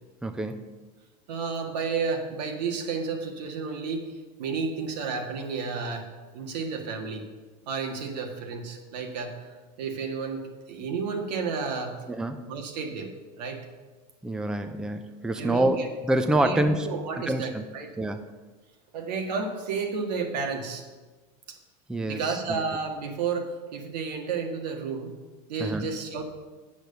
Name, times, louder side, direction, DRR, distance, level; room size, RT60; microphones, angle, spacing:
voice 1, 0.2-0.7 12.1-12.5 14.2-15.8 16.0-16.9 17.3-17.6 18.0-18.2 21.9-22.6 25.6-25.9, right 1 dB, 5° right, 8 dB, 0.5 m, -27 dB
voice 2, 1.3-6.1 6.3-7.3 7.7-12.0 12.5-13.1 13.4-13.7 15.4-15.9 16.3-17.9 18.9-20.9 22.1-25.1 25.5-26.2, right 5 dB, 85° right, 3 dB, 1.8 m, -32 dB
8.6 x 6.3 x 6.8 m, 1.3 s
supercardioid pair, 125°, 21 cm